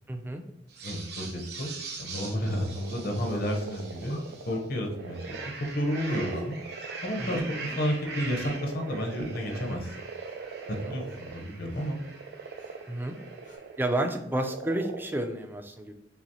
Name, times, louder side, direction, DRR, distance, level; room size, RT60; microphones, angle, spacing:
voice 1, 0.1-0.4 7.2-7.5 9.5-9.8 10.7-11.0 12.9-13.2 13.8-15.9, right 1 dB, 10° right, 5 dB, 0.3 m, -31 dB
sound 1, 0.7-4.6 5.0-13.7, right 4 dB, 60° right, 0.8 m, -43 dB
voice 2, 0.8-1.7 2.0-6.6 7.0-9.9 10.7-12.0, equal, 55° left, 2 dB, 0.7 m, -31 dB
sound 2, 2.3-2.4 3.3-3.6 4.1-4.7 6.1-6.6 7.3-7.9 8.4-8.7 10.3-10.4 11.1-11.2 11.7-11.9 12.6-12.7 13.4-13.6, equal, 75° left, 1.0 m, -42 dB
sound 3, 2.5-13.8 14.2-15.2, right 5 dB, 90° right, 0.3 m, -43 dB
5.6 x 2.0 x 2.7 m, 0.80 s
head